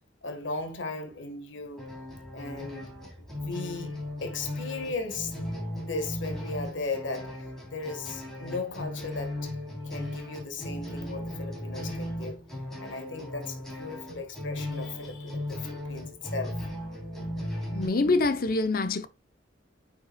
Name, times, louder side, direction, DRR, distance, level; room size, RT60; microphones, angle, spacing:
voice 1, 0.2-1.9 2.3-2.9 3.2-5.3 5.8-9.5 9.8-12.4 12.8-16.6, left 3 dB, 85° left, 1.6 m, -37 dB
sound 1, 1.8-17.9, left 1 dB, 5° left, 3.4 m, -37 dB
voice 2, 17.7-19.1, left 3 dB, 50° left, 0.7 m, -25 dB
9.3 x 5.3 x 2.3 m
head